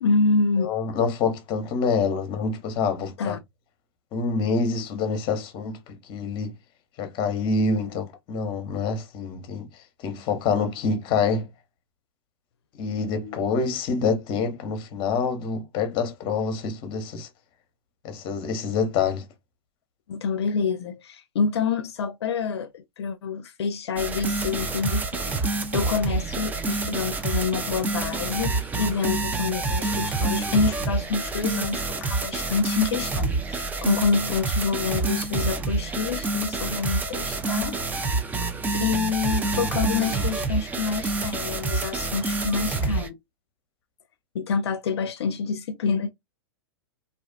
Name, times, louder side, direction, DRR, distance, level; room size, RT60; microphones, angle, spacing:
voice 1, 0.0-0.9 3.2-3.4 4.7-4.8 7.7-8.0 13.2-13.4 20.1-37.8 38.8-43.2 44.3-46.1, left 5 dB, 75° left, 0.5 m, -27 dB
voice 2, 0.6-3.4 4.1-6.5 7.0-9.7 10.0-11.5 12.8-17.3 18.0-19.2, left 5 dB, 35° left, 0.8 m, -26 dB
sound 1, 24.0-43.1, right 3 dB, 10° right, 0.4 m, -27 dB
2.5 x 2.3 x 2.2 m
hypercardioid pair, 115°, 14 cm